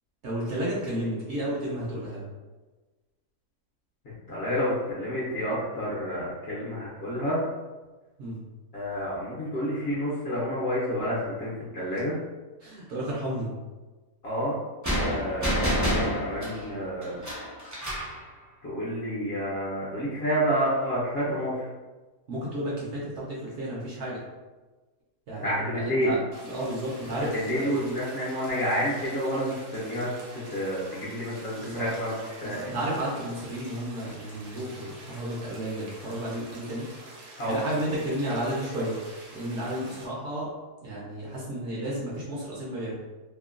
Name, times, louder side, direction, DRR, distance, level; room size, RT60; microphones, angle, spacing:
voice 1, 0.2-2.2 8.2-8.4 12.6-13.5 22.3-24.2 25.3-26.2 26.4-27.7 31.6-31.9 32.4-36.9 37.3-39.0 39.3-40.5 40.8-42.9, right 1 dB, 60° right, -5 dB, 0.8 m, -32 dB
voice 2, 4.3-7.4 8.7-12.2 14.2-14.5 14.9-17.2 18.6-21.7 25.4-26.1 27.3-32.7 37.4-37.6, equal, 55° left, -6 dB, 0.8 m, -29 dB
sound 1, 14.8-18.2, equal, 25° right, 0.3 m, -28 dB
sound 2, 26.3-40.1, right 1 dB, 85° right, 1.2 m, -47 dB
2.9 x 2.1 x 2.4 m, 1.2 s
omnidirectional pair, 1.6 m